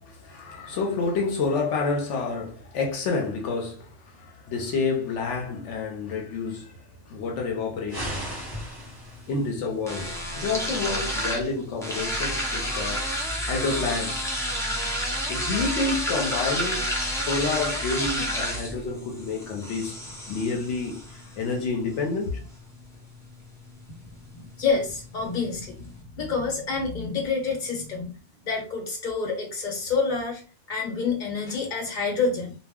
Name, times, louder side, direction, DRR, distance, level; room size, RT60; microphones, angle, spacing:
voice 1, 0.0-6.7 7.1-8.2 9.3-13.1 13.5-14.3 15.3-20.0 20.3-22.5, left 4 dB, 80° left, 0.9 m, -29 dB
sound 1, 7.9-9.5, equal, 20° right, 1.0 m, -36 dB
sound 2, 8.0-26.0, equal, 5° left, 0.6 m, -32 dB
voice 2, 24.3-28.1 28.4-30.4 30.7-32.6, left 4 dB, 45° left, 1.0 m, -28 dB
2.1 x 2.1 x 3.5 m
omnidirectional pair, 1.2 m